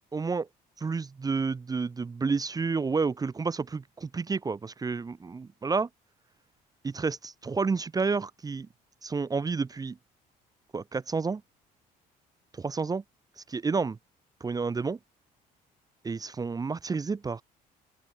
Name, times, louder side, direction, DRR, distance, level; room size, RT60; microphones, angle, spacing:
voice 1, 0.1-0.5 0.8-5.9 6.8-8.7 9.0-10.0 10.7-11.4 12.6-13.0 13.4-14.0 14.4-15.0 16.0-17.4, right 4 dB, 20° right, 0.8 m, -30 dB
open air
cardioid pair, 110°, 17 cm